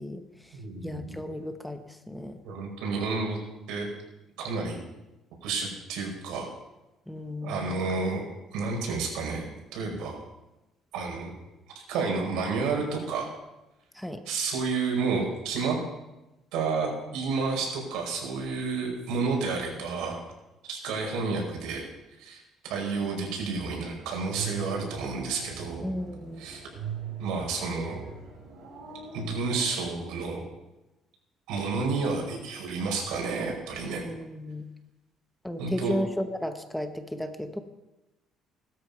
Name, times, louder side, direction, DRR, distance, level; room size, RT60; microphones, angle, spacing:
voice 1, 0.0-2.4 7.1-7.9 13.9-14.2 25.8-26.4 34.0-34.7 35.4-37.6, left 1 dB, 5° left, 8 dB, 0.9 m, -34 dB
voice 2, 0.5-1.2 2.4-3.4 3.7-3.9 4.4-4.8 5.4-6.5 7.4-8.3 8.5-10.2 10.9-11.3 11.9-13.3 14.3-15.8 16.5-20.2 20.7-21.9 22.2-25.9 26.4-26.6 27.2-28.0 29.1-30.4 31.5-34.0 35.6-36.0, right 4 dB, 90° right, 0 dB, 5.1 m, -30 dB
sound 1, 24.2-29.7, right 6 dB, 70° right, 6.2 m, -40 dB
17.5 x 13.0 x 5.4 m, 1.0 s
cardioid pair, 160°, 0 cm